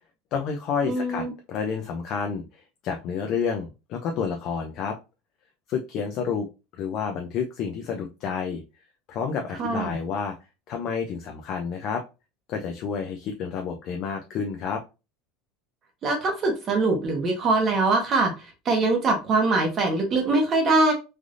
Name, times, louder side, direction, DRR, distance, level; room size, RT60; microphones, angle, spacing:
voice 1, 0.3-5.0 5.7-6.5 6.7-8.6 9.1-10.4 10.7-12.0 12.5-14.8, left 6 dB, 40° left, 3 dB, 0.4 m, -29 dB
voice 2, 0.8-1.3 9.6-9.9 16.0-18.3 18.6-20.9, right 3 dB, 30° right, 3 dB, 0.8 m, -22 dB
3.3 x 2.5 x 2.4 m, 0.28 s
supercardioid pair, 155°, 0 cm